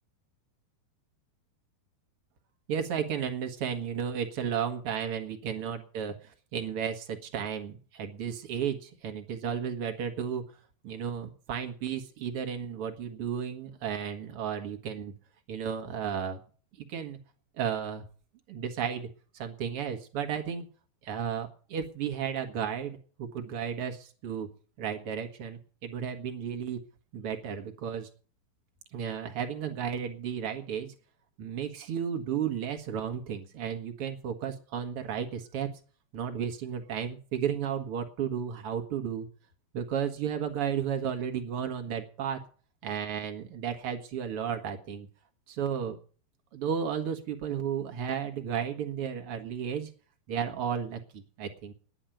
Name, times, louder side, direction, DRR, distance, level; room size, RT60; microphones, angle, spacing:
voice 1, 2.7-6.1 6.5-10.4 10.8-15.1 15.5-16.4 16.9-17.2 17.6-18.0 18.5-19.1 19.3-20.7 21.0-24.5 24.8-26.8 27.1-28.1 28.9-30.9 31.4-35.7 36.1-39.3 39.7-42.4 42.8-45.1 45.5-46.0 46.5-49.9 50.3-51.7, right 8 dB, 65° right, 4 dB, 1.4 m, -33 dB
10.5 x 9.9 x 9.0 m, 0.42 s
omnidirectional pair, 5.0 m